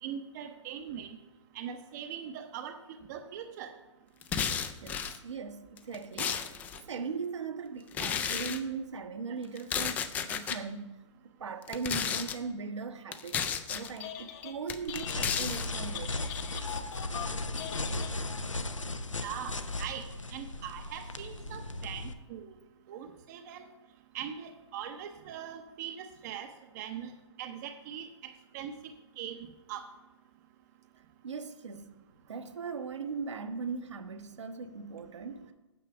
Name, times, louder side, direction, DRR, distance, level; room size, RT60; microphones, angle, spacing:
voice 1, 0.0-1.1 1.5-2.8 3.1-3.7 19.2-20.0 20.3-22.5 22.9-23.7 24.1-26.5 26.7-27.1 27.4-28.0 28.5-28.7 29.2-29.8, right 9 dB, 35° right, 0.7 m, -41 dB
sound 1, 4.2-5.2 5.8-6.8 7.9-8.6 9.6-10.6 11.6-12.4 13.1-13.9 14.7-15.7, left 7 dB, 10° left, 0.3 m, -33 dB
voice 2, 4.8-11.0 11.4-16.4 31.2-32.0 32.3-35.5, right 5 dB, 70° right, 1.1 m, -39 dB
Telephone, 13.8-14.6 14.9-18.6, left 10 dB, 30° left, 0.8 m, -42 dB
sound 2, 14.9-22.1, left 2 dB, 90° left, 0.8 m, -36 dB
9.1 x 6.7 x 5.9 m
figure-of-eight pair, 130°, 16 cm